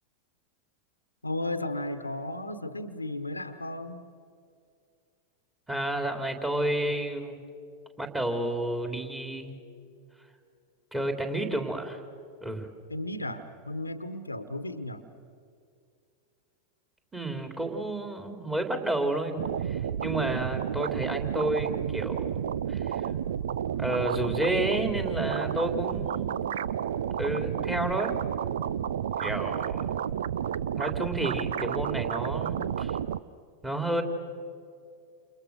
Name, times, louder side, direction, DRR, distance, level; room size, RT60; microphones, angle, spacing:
voice 1, 1.2-4.1 12.9-15.0, left 1 dB, 85° left, 11 dB, 1.3 m, -34 dB
voice 2, 5.7-7.4 8.0-9.6 10.9-12.0 12.4-12.7 17.1-22.4 22.7-23.1 23.8-26.5 27.2-28.1 29.2-30.0 30.8-33.0 33.6-34.0, right 1 dB, 10° right, 4 dB, 3.4 m, -31 dB
sound 1, 19.4-33.2, right 9 dB, 60° right, 0.6 m, -31 dB
29.5 x 28.5 x 6.6 m, 2.3 s
figure-of-eight pair, 90°, 0 cm